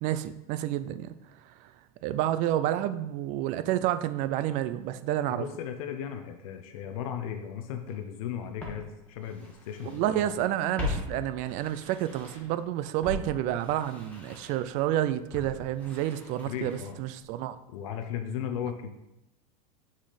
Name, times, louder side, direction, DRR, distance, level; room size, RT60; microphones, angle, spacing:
voice 1, 0.0-1.2 2.0-5.4 9.8-17.6, right 12 dB, 45° right, 0.4 m, -29 dB
voice 2, 5.3-10.5 16.5-17.0 17.7-18.9, left 9 dB, 75° left, 0.6 m, -36 dB
Walk footsteps, 7.9-8.0 8.6-10.1 10.4-12.6 13.0-17.1 17.3-17.4, left 2 dB, 5° left, 1.3 m, -39 dB
6.1 x 4.1 x 4.0 m
supercardioid pair, 130°, 18 cm